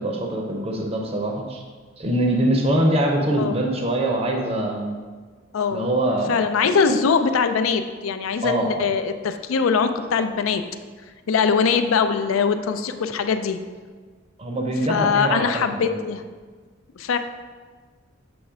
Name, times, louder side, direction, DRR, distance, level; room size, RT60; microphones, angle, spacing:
voice 1, 0.0-1.6 2.0-5.0 5.7-6.3 8.4-8.9 14.4-15.4 15.7-16.0, right 1 dB, 30° right, 1 dB, 0.6 m, -23 dB
voice 2, 5.5-5.9 6.3-10.6 11.3-13.6 14.9-16.2 17.0-17.2, left 5 dB, 90° left, 9 dB, 0.4 m, -22 dB
7.0 x 3.1 x 4.9 m, 1.5 s
head